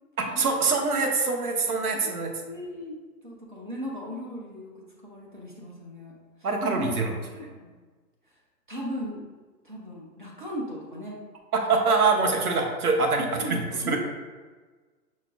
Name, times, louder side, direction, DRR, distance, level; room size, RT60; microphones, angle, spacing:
voice 1, 0.2-2.3 6.4-7.1 11.5-13.6 13.9-14.0, right 4 dB, 60° right, 2 dB, 0.8 m, -24 dB
voice 2, 2.4-3.0 3.2-6.2 6.6-6.9 7.3-7.7 8.7-9.3 9.6-11.2 13.2-14.0, equal, 35° right, -3 dB, 0.4 m, -37 dB
5.6 x 2.3 x 2.4 m, 1.4 s
hypercardioid pair, 140°, 50 cm